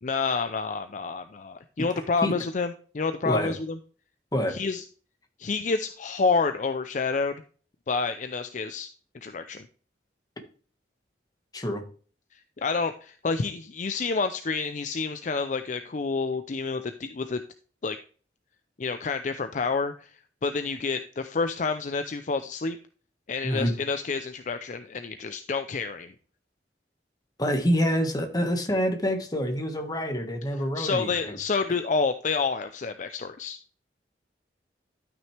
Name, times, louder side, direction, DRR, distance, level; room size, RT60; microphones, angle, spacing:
voice 1, 0.0-3.8 4.5-4.8 5.4-7.3 7.9-8.9 9.2-9.7 12.3-17.4 17.8-18.0 18.8-22.8 23.3-26.1 30.8-33.6, left 4 dB, 45° left, 9 dB, 0.5 m, -29 dB
voice 2, 11.5-11.8 23.4-23.7 27.4-31.4, equal, 20° left, 5 dB, 1.5 m, -26 dB
12.5 x 6.1 x 3.3 m, 0.41 s
head